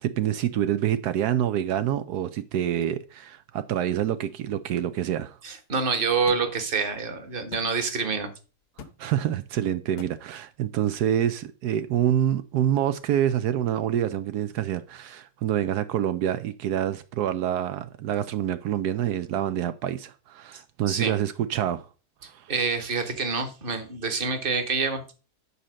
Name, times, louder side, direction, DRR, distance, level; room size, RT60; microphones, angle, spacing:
voice 1, 0.0-5.3 9.0-21.9 22.3-22.5, right 10 dB, 80° right, 1.2 m, -27 dB
voice 2, 5.4-8.3 20.5-20.6 20.9-21.1 22.2-25.0, right 5 dB, 35° right, 1.4 m, -27 dB
sound 1, 6.3-6.4 7.5-7.7 8.8-9.0 10.0-10.1, left 6 dB, 85° left, 1.5 m, -42 dB
9.8 x 4.3 x 6.3 m
omnidirectional pair, 1.7 m